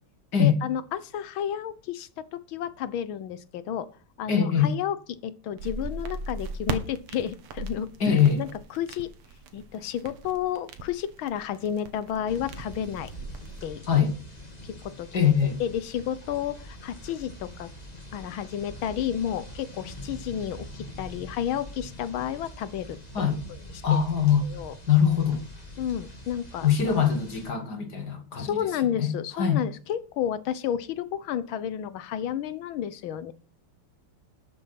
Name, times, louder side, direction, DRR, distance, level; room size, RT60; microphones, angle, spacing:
voice 1, 0.4-3.9 4.2-9.1 9.5-13.1 13.6-14.0 14.6-15.3 15.6-17.7 18.1-23.4 23.9-24.0 24.4-24.7 25.8-26.9 28.4-33.3, left 10 dB, 70° left, 1.6 m, -31 dB
voice 2, 4.3-4.7 8.0-8.4 13.9-14.1 15.1-15.6 23.1-23.4 23.8-24.4 24.9-25.4 26.6-28.6 29.0-29.1 29.4-29.6, left 8 dB, 50° left, 2.1 m, -22 dB
sound 1, 5.6-13.7, right 3 dB, 85° right, 2.4 m, -38 dB
sound 2, 12.3-27.5, equal, 20° left, 2.3 m, -44 dB
12.5 x 7.8 x 5.8 m
omnidirectional pair, 2.4 m